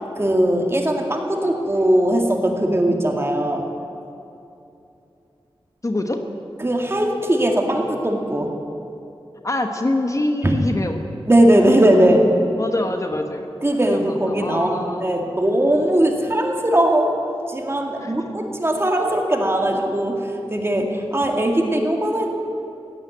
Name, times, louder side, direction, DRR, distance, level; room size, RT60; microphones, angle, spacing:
voice 1, 0.2-3.6 6.6-8.5 10.4-10.5 11.3-12.2 13.6-17.1 17.5-22.3, right 1 dB, 25° right, 2 dB, 2.2 m, -19 dB
voice 2, 5.8-6.2 9.4-11.1 12.6-13.5 13.9-15.0 18.0-18.2, left 2 dB, 35° left, 5 dB, 1.1 m, -25 dB
16.0 x 9.7 x 9.2 m, 2.7 s
wide cardioid pair, 65°, 10 cm